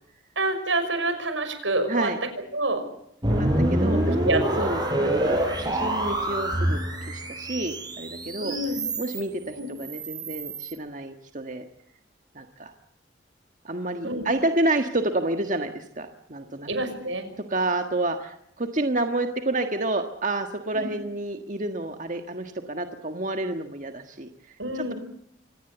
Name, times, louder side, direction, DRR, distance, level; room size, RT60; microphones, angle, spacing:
voice 1, 0.4-2.1 2.5-2.8 4.2-4.7 8.4-8.8 9.5-9.7 14.0-14.2 16.7-17.3 20.7-20.9 24.6-25.0, right 2 dB, 80° right, 9 dB, 6.0 m, -27 dB
sound 1, 3.2-9.2 9.7-10.7, right 1 dB, 20° right, 6.0 m, -26 dB
voice 2, 3.3-4.2 4.6-8.5 9.0-11.6 12.3-12.7 13.6-16.7 17.5-24.9, right 2 dB, 40° right, 6 dB, 1.6 m, -29 dB
25.5 x 19.0 x 8.0 m, 0.73 s
head